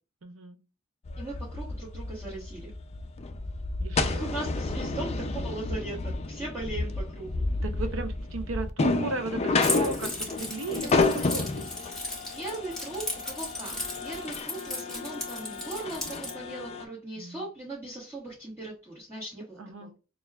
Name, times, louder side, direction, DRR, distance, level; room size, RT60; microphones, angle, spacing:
voice 1, 0.2-0.6 3.8-4.3 7.6-11.7 17.2-17.5 19.6-19.9, right 2 dB, 70° right, 0.6 m, -35 dB
sound 1, 1.0-16.8, left 3 dB, 30° left, 0.3 m, -31 dB
voice 2, 1.2-2.7 4.0-7.4 10.8-11.3 12.3-19.9, right 2 dB, 15° right, 1.3 m, -39 dB
Keys jangling, 9.6-16.3, left 2 dB, 5° left, 1.1 m, -36 dB
6.3 x 2.3 x 2.3 m
head